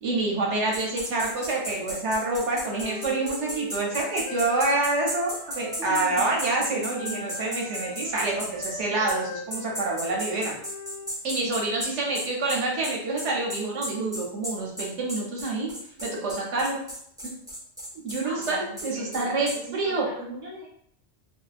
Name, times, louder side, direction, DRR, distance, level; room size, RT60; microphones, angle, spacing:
voice 1, 0.0-10.5 11.2-15.7 16.0-16.8 17.2-17.4 18.0-20.1, right 2 dB, 85° right, -1 dB, 1.0 m, -27 dB
sound 1, 0.7-8.7 9.1-9.2 9.5-19.6, equal, 5° right, 0.5 m, -34 dB
Wind instrument woodwind instrument, 2.6-6.7 6.9-11.1, left 3 dB, 65° left, 0.8 m, -40 dB
voice 2, 5.8-6.3 18.2-20.6, right 1 dB, 50° right, -6 dB, 0.7 m, -39 dB
2.6 x 2.1 x 2.4 m, 0.67 s
omnidirectional pair, 1.2 m